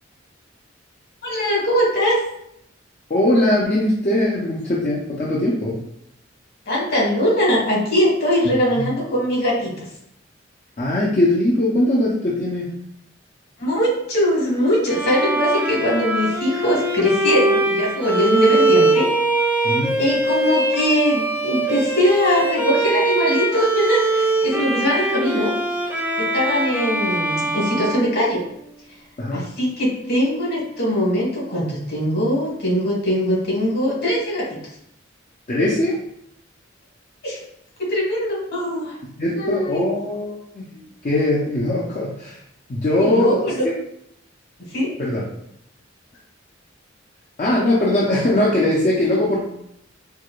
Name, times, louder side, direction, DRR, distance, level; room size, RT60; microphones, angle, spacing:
voice 1, 1.2-2.2 6.7-9.7 13.6-19.1 19.9-25.5 26.2-28.4 29.3-34.6 37.2-37.4 37.8-39.0 39.3-39.8 40.7-40.8 43.0-43.6 44.7-44.9, equal, 55° left, -4 dB, 1.5 m, -21 dB
voice 2, 3.1-5.8 8.8-8.9 10.8-12.7 19.6-20.0 29.2-29.5 35.5-36.0 39.2-40.7 41.0-42.4 42.7-43.4 45.0-45.2 47.4-49.5, left 1 dB, 40° left, -5 dB, 0.5 m, -20 dB
Bowed string instrument, 14.9-28.8, right 2 dB, 10° right, 0.5 m, -22 dB
4.6 x 2.2 x 2.4 m, 0.74 s
head